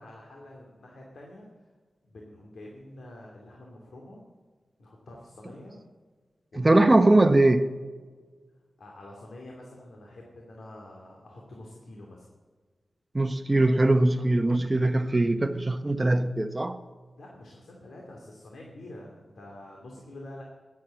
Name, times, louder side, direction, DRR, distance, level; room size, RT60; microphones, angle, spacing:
voice 1, 0.0-1.5 2.0-4.2 4.8-5.8 6.5-6.8 8.8-12.3 17.2-20.4, left 1 dB, 85° left, 2.6 m, -46 dB
voice 2, 6.5-7.7 13.1-16.8, right 2 dB, 20° right, 0.9 m, -21 dB
20.5 x 8.6 x 7.6 m
wide cardioid pair, 110°, 0 cm